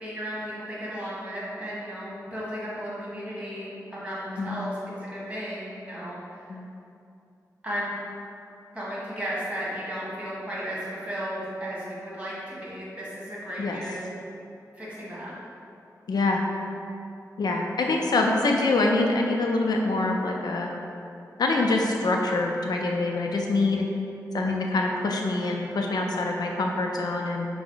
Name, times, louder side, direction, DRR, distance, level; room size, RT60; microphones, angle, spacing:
voice 1, 0.0-6.6 7.6-7.9 8.7-14.0 14.7-15.3, equal, 15° right, -8 dB, 1.5 m, -34 dB
voice 2, 16.1-16.4 17.4-20.7 21.4-23.8 24.3-27.5, left 2 dB, 75° left, 1 dB, 0.4 m, -25 dB
5.5 x 2.0 x 3.8 m, 2.6 s
cardioid pair, 60°, 7 cm